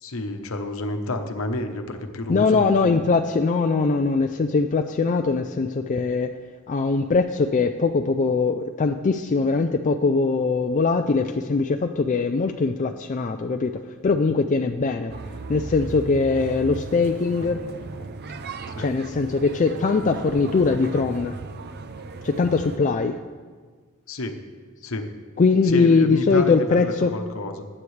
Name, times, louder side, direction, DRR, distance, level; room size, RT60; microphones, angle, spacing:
voice 1, 0.0-3.0 18.7-18.9 24.1-24.4 24.8-25.1 25.6-27.7, left 1 dB, 65° left, 5 dB, 1.0 m, -30 dB
voice 2, 2.3-6.4 6.7-13.7 14.0-15.1 15.5-17.6 18.8-21.4 22.2-23.2 25.4-27.1, left 4 dB, 35° left, 5 dB, 0.4 m, -21 dB
sound 1, 15.1-22.8, right 3 dB, 45° right, 0.5 m, -36 dB
15.0 x 9.8 x 3.3 m, 1.5 s
head